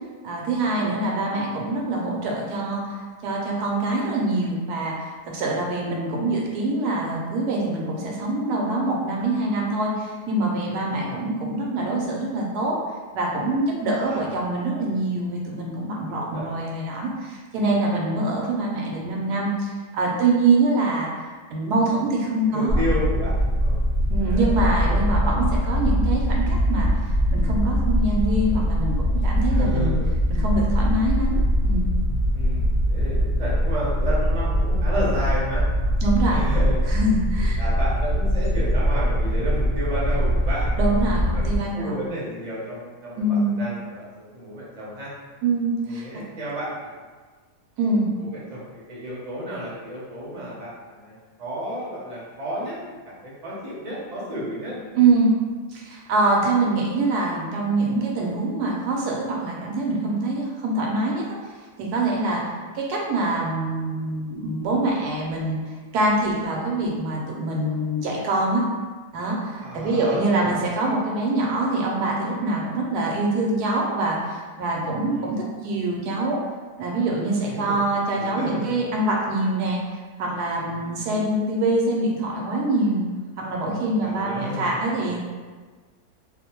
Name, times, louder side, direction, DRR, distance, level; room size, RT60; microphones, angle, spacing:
voice 1, 0.2-12.8 13.1-22.8 24.1-28.9 29.2-29.9 30.3-31.9 36.0-36.4 36.9-37.6 40.8-42.1 43.2-43.5 45.4-46.2 47.8-48.1 55.0-55.3 55.7-61.2 61.8-65.6 65.9-68.6 69.1-76.4 76.8-79.8 80.2-83.0 83.4-85.2, right 2 dB, 80° right, -2 dB, 1.1 m, -24 dB
voice 2, 16.1-16.4 22.4-23.8 24.2-24.5 24.8-25.3 28.4-28.6 29.5-30.1 32.3-35.6 36.3-36.8 37.6-40.7 41.3-45.1 45.9-46.7 48.5-55.0 69.6-70.6 75.1-75.3 77.4-77.8 78.2-78.8 80.6-81.1 84.0-85.1, equal, 40° right, -7 dB, 0.6 m, -32 dB
sound 1, 22.7-41.6, equal, 55° left, 0.6 m, -22 dB
2.9 x 2.0 x 2.9 m, 1.4 s
omnidirectional pair, 1.7 m